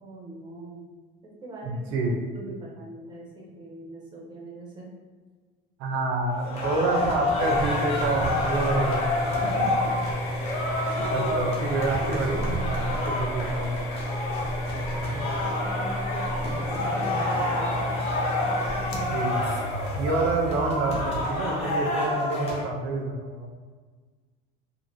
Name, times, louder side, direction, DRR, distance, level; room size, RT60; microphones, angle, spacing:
voice 1, 0.0-0.8 1.4-4.9 15.3-18.0 18.4-19.1, right 1 dB, 25° right, -3 dB, 0.5 m, -42 dB
voice 2, 1.6-2.2 5.8-9.0 9.4-9.7 10.7-13.7 19.1-19.3 20.0-23.5, right 3 dB, 85° right, 2 dB, 0.6 m, -28 dB
sound 1, 6.3-22.6, left 1 dB, 35° left, 0.6 m, -29 dB
sound 2, 7.4-21.9, equal, 80° left, 0.6 m, -32 dB
3.0 x 2.5 x 2.6 m, 1.5 s
cardioid pair, 180°, 19 cm